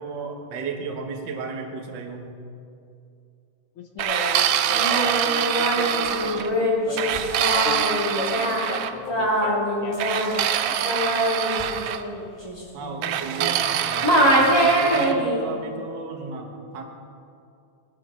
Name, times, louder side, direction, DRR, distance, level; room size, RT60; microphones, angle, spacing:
voice 1, 0.0-2.3 12.7-16.8, right 4 dB, 50° right, 2 dB, 1.4 m, -34 dB
voice 2, 3.8-10.8, left 4 dB, 60° left, 4 dB, 1.5 m, -36 dB
sound 1, 4.0-6.5 7.0-8.9 10.0-12.0 13.0-15.1, right 10 dB, 85° right, 1.3 m, -25 dB
Singing, 4.7-13.7 14.0-15.4, equal, 10° left, 2.3 m, -24 dB
19.0 x 12.5 x 5.1 m, 2.5 s
omnidirectional pair, 3.5 m